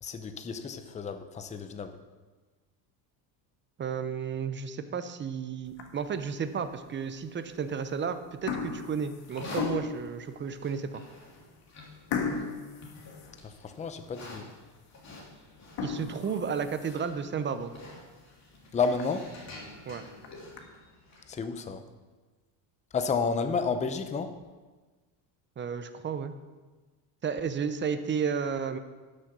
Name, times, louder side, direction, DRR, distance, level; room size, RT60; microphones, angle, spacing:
voice 1, 0.0-2.0 13.4-14.5 18.7-19.3 21.3-21.8 22.9-24.4, left 5 dB, 15° left, 9 dB, 0.6 m, -31 dB
voice 2, 3.8-11.0 15.8-17.7 19.9-20.0 25.6-26.3 27.2-28.8, right 6 dB, 25° right, 10 dB, 0.6 m, -32 dB
sound 1, 5.7-6.2 6.8-6.9 7.7-8.0 8.2-10.1 10.7-10.8 11.2-11.3 12.1-13.9 14.3-14.4 14.9-15.0 15.6-17.2 17.7-17.8 18.2-18.3 18.6-18.7 19.0-19.1 20.0-20.6, left 6 dB, 60° left, 1.7 m, -36 dB
Livestock farm animals working animals, 9.2-21.4, left 2 dB, 35° left, 3.0 m, -48 dB
11.5 x 6.6 x 6.1 m, 1.3 s
cardioid pair, 130°, 49 cm